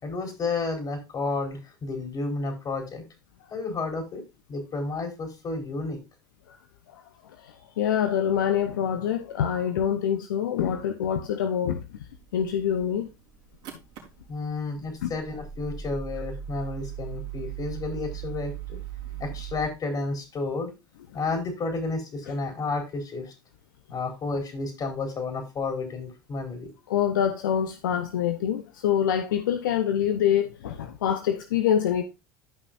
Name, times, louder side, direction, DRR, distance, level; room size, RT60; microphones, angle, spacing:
voice 1, 0.0-3.0 3.5-4.2 4.5-6.0 14.3-18.8 19.2-20.7 21.1-23.3 23.9-26.7, left 3 dB, 35° left, 4.5 m, -31 dB
voice 2, 7.8-11.8 12.3-13.1 15.0-15.1 26.9-32.0, left 9 dB, 80° left, 0.9 m, -25 dB
sound 1, 12.1-19.7, right 9 dB, 60° right, 3.9 m, -39 dB
13.5 x 5.8 x 2.6 m
hypercardioid pair, 75°, 11 cm